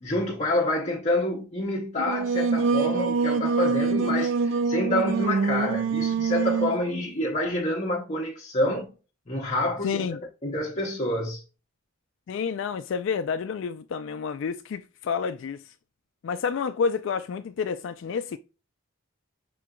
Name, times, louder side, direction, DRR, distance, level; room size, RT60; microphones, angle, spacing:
voice 1, 0.0-8.9 9.3-10.0 10.4-11.4, left 1 dB, 30° left, 0.7 m, -27 dB
Singing, 2.0-6.8, right 5 dB, 60° right, 0.4 m, -25 dB
voice 2, 9.8-10.2 12.3-15.7 16.2-18.4, left 6 dB, 60° left, 0.3 m, -29 dB
6.1 x 3.8 x 2.2 m
head